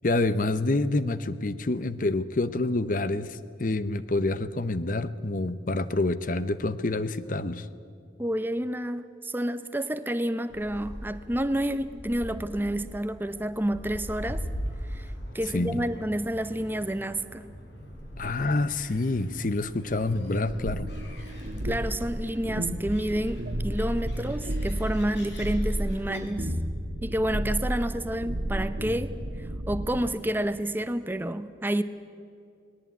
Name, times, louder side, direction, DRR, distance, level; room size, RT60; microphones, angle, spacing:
voice 1, 0.0-7.7 15.5-15.8 18.2-20.9, left 2 dB, 45° left, 14 dB, 0.7 m, -27 dB
voice 2, 8.2-14.5 14.9-17.5 21.6-26.5 27.0-31.8, right 1 dB, 10° right, 11 dB, 0.7 m, -29 dB
Gull seagull, 10.5-26.2, equal, 70° left, 5.1 m, -42 dB
sound 1, 20.5-30.1, right 1 dB, 65° right, 1.4 m, -32 dB
19.0 x 18.5 x 9.3 m, 2.4 s
head